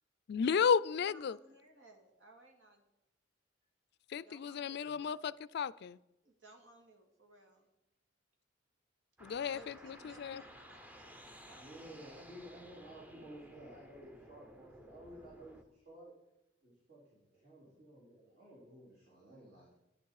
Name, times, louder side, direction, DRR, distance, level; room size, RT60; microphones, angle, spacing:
voice 1, 0.3-1.4 4.1-6.0 9.2-10.4, left 6 dB, 60° left, 18 dB, 0.3 m, -33 dB
voice 2, 1.0-2.8 4.2-5.3 6.2-7.7 9.2-12.0, right 1 dB, 80° right, 3 dB, 2.3 m, -61 dB
sound 1, 9.2-15.6, equal, 10° right, 0.7 m, -56 dB
voice 3, 11.5-16.1 16.6-19.8, right 1 dB, 55° right, -7 dB, 4.1 m, -54 dB
11.5 x 10.5 x 4.8 m, 0.90 s
head